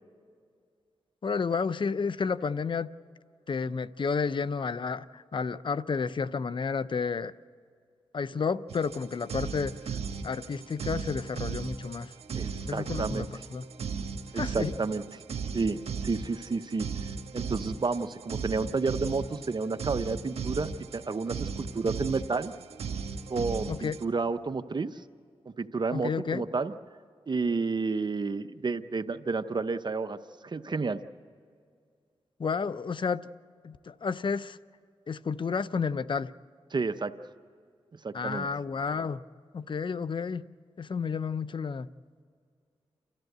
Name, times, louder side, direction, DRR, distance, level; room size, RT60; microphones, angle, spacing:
voice 1, 1.2-2.9 3.5-7.3 8.1-10.0 10.2-12.1 12.7-13.3 13.5-13.6 14.3-14.7 23.7-24.0 25.9-26.4 32.4-33.3 33.6-34.6 35.1-36.3 38.1-39.2 39.5-40.4 40.8-41.9, left 5 dB, 50° left, 16 dB, 0.6 m, -31 dB
sound 1, 8.7-24.0, right 5 dB, 80° right, 1.3 m, -37 dB
voice 2, 12.3-13.3 14.3-15.0 15.5-15.8 16.0-22.5 23.3-25.0 25.5-26.7 27.3-30.2 30.4-31.0 36.7-37.1 38.0-38.5, right 4 dB, 45° right, 11 dB, 0.8 m, -31 dB
29.0 x 13.5 x 8.0 m, 2.2 s
cardioid pair, 55°, 10 cm